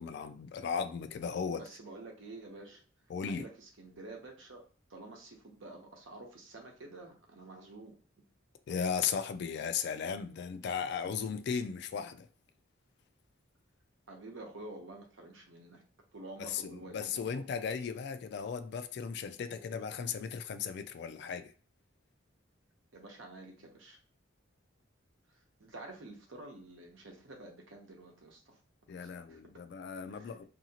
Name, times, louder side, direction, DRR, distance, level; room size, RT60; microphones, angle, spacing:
voice 1, 0.0-1.6 3.1-3.5 8.7-12.3 16.4-21.5 28.9-30.4, left 6 dB, 60° left, 0.3 m, -36 dB
voice 2, 1.5-2.8 3.3-4.6 4.9-8.0 14.1-15.8 16.1-17.4 22.9-24.0 25.3-28.6 29.0-29.4 30.1-30.4, right 2 dB, 85° right, 0.8 m, -49 dB
2.7 x 2.7 x 2.8 m
head